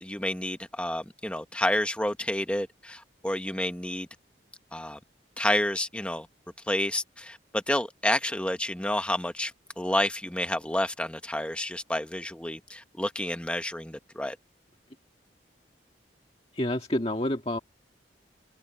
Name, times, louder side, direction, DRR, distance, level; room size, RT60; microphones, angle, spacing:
voice 1, 0.0-4.1 4.7-5.0 5.4-6.3 6.7-14.4, left 1 dB, 5° left, 1.1 m, -29 dB
voice 2, 16.5-17.6, left 1 dB, 30° left, 1.8 m, -28 dB
head